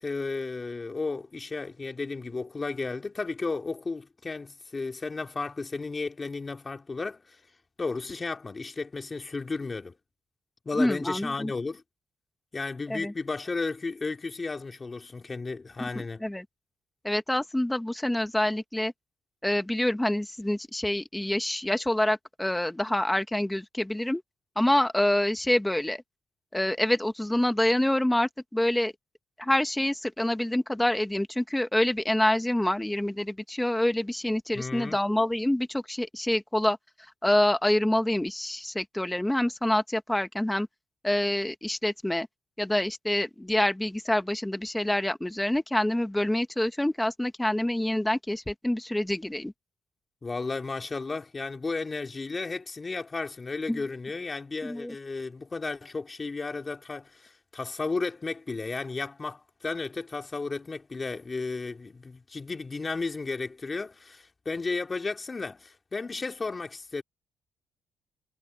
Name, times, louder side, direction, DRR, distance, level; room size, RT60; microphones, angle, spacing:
voice 1, 0.0-7.4 7.8-9.9 10.6-11.8 12.5-16.2 34.5-35.0 50.2-67.0, left 3 dB, 30° left, 2.7 m, -33 dB
voice 2, 10.8-11.5 12.9-13.1 15.8-15.9 16.2-16.4 17.0-18.9 19.4-24.2 24.5-26.0 26.5-28.9 29.4-36.8 37.2-40.7 41.0-42.3 42.6-49.5 53.7-53.8 54.6-54.9, left 1 dB, 5° left, 1.6 m, -26 dB
cardioid pair, 90°, 0 cm